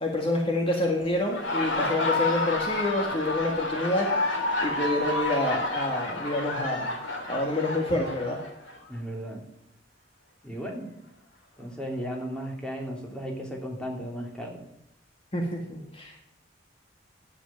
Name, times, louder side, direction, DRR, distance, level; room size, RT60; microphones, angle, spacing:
voice 1, 0.0-4.1 4.6-6.9 7.3-8.4 15.3-16.2, left 1 dB, 30° left, 1 dB, 1.8 m, -27 dB
Laughter, 1.1-8.8, left 2 dB, 90° left, 3.5 m, -30 dB
voice 2, 8.9-9.4 10.4-10.9 11.6-14.6, equal, 5° left, 0 dB, 2.8 m, -35 dB
11.0 x 8.3 x 8.8 m, 0.82 s
head